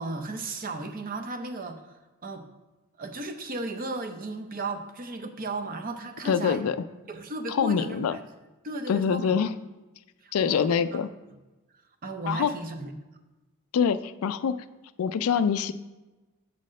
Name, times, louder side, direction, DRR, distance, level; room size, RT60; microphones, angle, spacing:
voice 1, 0.0-1.8 2.2-2.5 3.0-6.6 7.1-8.2 8.6-9.4 10.2-11.0 12.0-12.9, right 2 dB, 40° right, 5 dB, 0.7 m, -35 dB
voice 2, 6.3-6.8 7.5-8.2 8.9-9.5 10.3-11.1 12.3-12.5 13.7-14.6 15.0-15.7, left 7 dB, 70° left, 12 dB, 0.3 m, -25 dB
7.4 x 4.2 x 6.3 m, 1.1 s
head